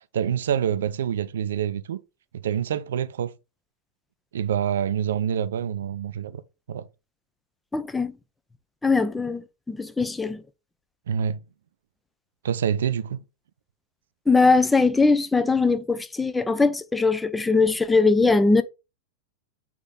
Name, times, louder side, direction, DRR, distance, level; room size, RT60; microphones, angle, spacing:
voice 1, 0.1-2.0 2.3-3.3 4.3-6.4 6.7-6.9 11.1-11.4 12.4-13.2, right 8 dB, 60° right, 0.5 m, -26 dB
voice 2, 7.7-8.1 8.8-10.4 14.3-18.6, left 3 dB, 10° left, 0.5 m, -21 dB
7.2 x 3.6 x 3.7 m
figure-of-eight pair, 90°, 0 cm